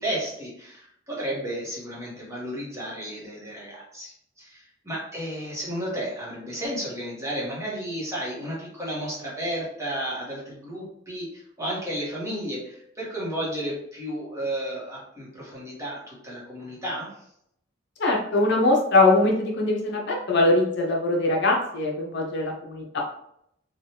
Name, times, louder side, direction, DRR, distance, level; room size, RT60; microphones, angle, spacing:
voice 1, 0.0-17.1, right 1 dB, 15° right, -6 dB, 1.0 m, -33 dB
voice 2, 18.0-23.0, left 2 dB, 60° left, -1 dB, 0.7 m, -22 dB
3.3 x 2.3 x 2.8 m, 0.74 s
head